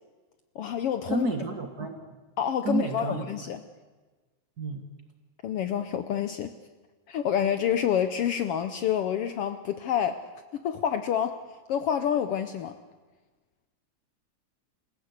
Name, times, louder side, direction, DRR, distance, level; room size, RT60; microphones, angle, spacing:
voice 1, 0.5-1.3 2.4-3.6 5.4-6.5 7.1-10.2 10.5-11.4 11.7-12.7, left 9 dB, 70° left, 9 dB, 1.5 m, -28 dB
voice 2, 1.1-2.0 2.6-3.3 4.6-4.8, right 3 dB, 40° right, 5 dB, 1.8 m, -30 dB
26.5 x 16.0 x 8.1 m, 1.3 s
omnidirectional pair, 3.3 m